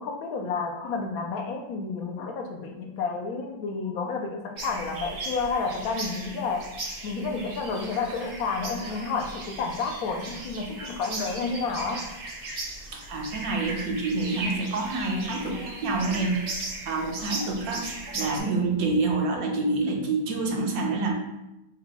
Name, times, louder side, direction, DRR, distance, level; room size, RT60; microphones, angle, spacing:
voice 1, 0.0-6.6 7.0-12.0, left 4 dB, 75° left, 3 dB, 1.0 m, -30 dB
sound 1, 4.6-18.4, right 2 dB, 45° right, 0.8 m, -37 dB
voice 2, 12.9-21.1, right 3 dB, 70° right, 2 dB, 1.0 m, -27 dB
4.0 x 2.2 x 4.0 m, 0.92 s
omnidirectional pair, 1.7 m